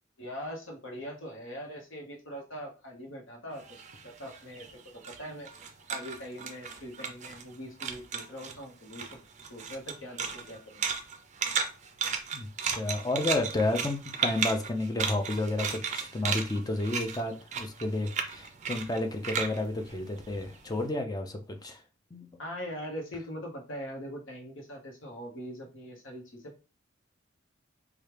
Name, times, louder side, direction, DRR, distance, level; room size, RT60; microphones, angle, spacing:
voice 1, 0.2-3.6 4.0-4.7 5.1-5.5 5.9-9.2 9.5-10.8 22.4-26.6, equal, 65° left, 1.1 m, -41 dB
sound 1, 3.6-7.5 7.8-8.6 8.9-20.7, right 6 dB, 35° right, 0.4 m, -35 dB
voice 2, 12.3-21.8 22.1-22.4, left 2 dB, 20° left, 0.4 m, -31 dB
3.1 x 2.3 x 3.2 m
head